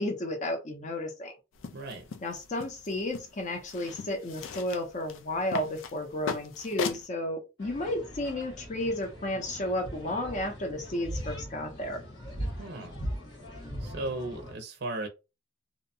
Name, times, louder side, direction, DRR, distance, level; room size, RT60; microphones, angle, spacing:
voice 1, 0.0-1.3 2.2-12.0, left 1 dB, 40° left, 0.6 m, -33 dB
sound 1, 1.5-7.1, left 6 dB, 90° left, 0.4 m, -39 dB
voice 2, 1.7-2.0 12.6-13.0 13.8-15.1, right 2 dB, 55° right, 0.5 m, -36 dB
sound 2, 7.6-14.5, equal, 75° left, 1.3 m, -40 dB
2.7 x 2.1 x 2.6 m
head